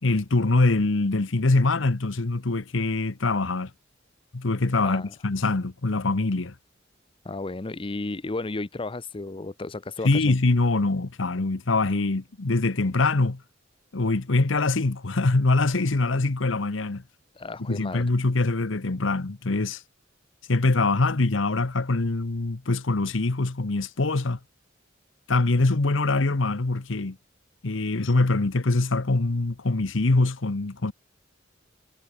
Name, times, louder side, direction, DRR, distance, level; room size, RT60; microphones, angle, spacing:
voice 1, 0.0-3.7 4.3-6.5 10.0-13.4 13.9-17.0 17.7-19.8 20.5-24.4 25.3-27.2 27.6-30.9, left 2 dB, 75° left, 1.0 m, -24 dB
voice 2, 4.8-5.1 7.2-10.4 17.3-18.0, left 2 dB, 25° left, 0.6 m, -33 dB
head